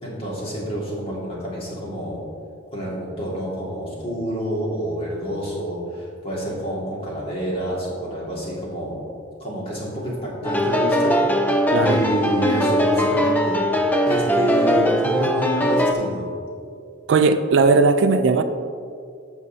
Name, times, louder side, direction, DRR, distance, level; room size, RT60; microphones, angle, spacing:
voice 1, 0.0-2.2 2.7-9.0 9.4-11.4 11.8-16.2, equal, 30° left, -5 dB, 1.9 m, -28 dB
sound 1, 10.4-15.9, equal, 10° left, 0.4 m, -20 dB
voice 2, 11.7-12.0 17.1-18.4, right 4 dB, 60° right, 9 dB, 0.3 m, -17 dB
13.5 x 5.3 x 2.7 m, 2.3 s
head